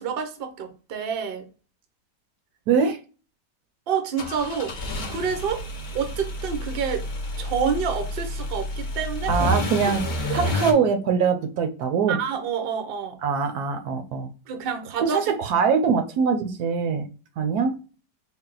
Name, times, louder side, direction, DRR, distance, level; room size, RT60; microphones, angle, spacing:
voice 1, 0.0-1.5 3.9-4.7 5.1-5.6 5.9-7.0 7.4-9.5 10.2-10.5 12.1-13.2 14.5-15.2, right 6 dB, 55° right, 6 dB, 0.6 m, -28 dB
voice 2, 2.7-3.0 9.3-10.0 10.3-12.2 13.2-14.3 15.0-17.1 17.4-17.8, right 6 dB, 70° right, 6 dB, 1.1 m, -23 dB
sound 1, 4.2-10.7, left 1 dB, 55° left, 0.5 m, -29 dB
4.1 x 2.1 x 3.8 m, 0.35 s
omnidirectional pair, 1.8 m